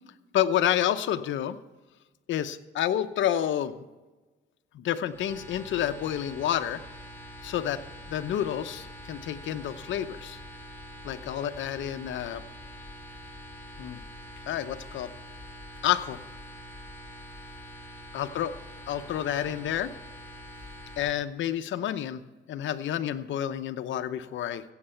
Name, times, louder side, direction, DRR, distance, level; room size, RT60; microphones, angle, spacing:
voice 1, 0.3-1.6 2.3-3.8 4.7-6.8 7.4-7.8 8.1-10.4 11.0-12.4 13.8-14.0 14.5-15.1 15.8-16.2 18.1-18.5 18.9-19.9 21.0-22.2 22.5-24.6, left 11 dB, 70° left, 9 dB, 0.8 m, -29 dB
sound 1, 5.1-21.1, equal, 10° left, 2.6 m, -45 dB
15.5 x 8.0 x 5.7 m, 1.2 s
cardioid pair, 90°, 20 cm